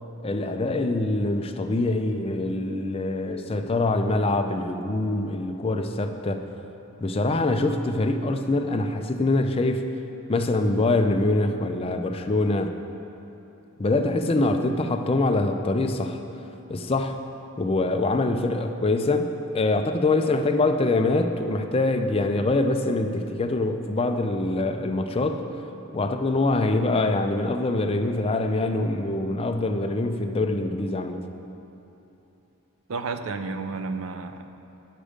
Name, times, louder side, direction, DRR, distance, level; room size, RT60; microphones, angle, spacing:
voice 1, 0.2-6.4 7.0-9.9 10.3-12.8 13.8-16.2 16.7-17.2 17.6-19.3 19.5-25.4 25.9-31.2, left 2 dB, 25° left, 6 dB, 0.4 m, -24 dB
voice 2, 32.9-34.5, right 4 dB, 65° right, 8 dB, 0.5 m, -31 dB
9.9 x 6.7 x 5.0 m, 2.9 s
head